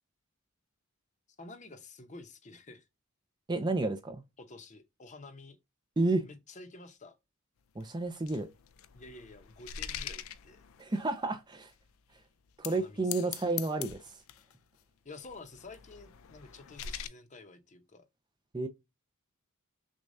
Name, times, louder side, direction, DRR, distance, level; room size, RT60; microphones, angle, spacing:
voice 1, 1.4-2.8 4.4-5.6 6.2-7.2 8.9-10.6 12.7-13.3 15.0-18.0, left 3 dB, 35° left, 0.8 m, -50 dB
voice 2, 3.5-4.2 6.0-6.3 7.8-8.5 10.8-11.7 12.6-14.1 18.5-18.7, right 2 dB, 20° right, 0.5 m, -31 dB
sound 1, 7.8-11.1 11.7-11.8 12.5-12.8 13.1-14.5 15.2-17.1, left 9 dB, 75° left, 0.4 m, -43 dB
6.2 x 2.3 x 2.6 m
head